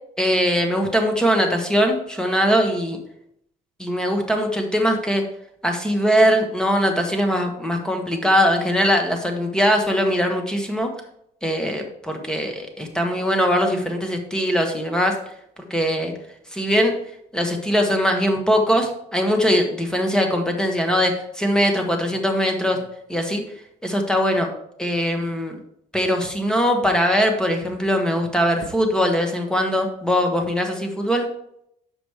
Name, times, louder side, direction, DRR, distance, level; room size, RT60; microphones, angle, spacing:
voice 1, 0.2-3.0 3.8-5.2 5.6-10.9 11.4-15.2 15.7-16.1 16.5-16.9 17.3-22.8 23.1-23.4 23.8-24.5 24.8-25.6 25.9-31.3, equal, 5° left, 3 dB, 1.3 m, -21 dB
6.0 x 5.1 x 4.8 m, 0.75 s
cardioid pair, 110°, 17 cm